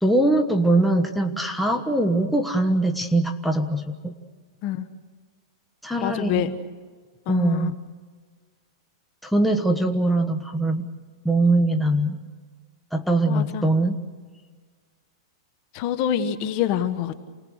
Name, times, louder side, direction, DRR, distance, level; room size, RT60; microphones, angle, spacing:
voice 1, 0.0-4.1 5.8-6.6 7.3-7.7 9.2-10.9 11.2-12.2 12.9-14.0, right 2 dB, ahead, 3 dB, 1.3 m, -22 dB
voice 2, 6.0-6.5 7.3-7.7 13.3-13.7 15.7-17.2, left 10 dB, 40° left, 10 dB, 1.3 m, -26 dB
28.5 x 20.0 x 6.5 m, 1.5 s
hypercardioid pair, 145°, 3 cm